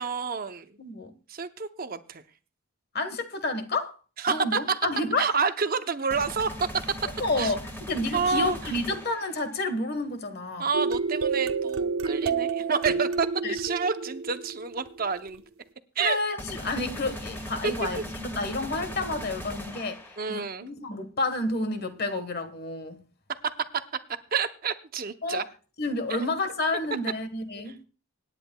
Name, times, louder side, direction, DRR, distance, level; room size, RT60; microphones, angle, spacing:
voice 1, 0.0-0.7 1.3-2.2 4.2-4.8 5.2-6.7 7.4-7.5 8.1-8.7 10.6-15.4 16.0-16.2 17.6-18.0 20.2-20.7 23.4-23.8 24.3-25.4 26.1-26.3 27.7-27.8, right 5 dB, 40° right, 0.7 m, -29 dB
voice 2, 0.8-1.1 2.9-3.9 4.3-5.3 7.2-10.7 12.9-13.0 13.4-13.5 16.0-20.0 20.3-23.0 25.2-25.5 25.8-27.7, left 2 dB, 45° left, 1.3 m, -30 dB
sound 1, 6.1-9.5 16.4-20.4, equal, 10° left, 2.5 m, -39 dB
sound 2, 10.7-15.2, right 5 dB, 80° right, 0.8 m, -29 dB
25.5 x 9.9 x 2.3 m
head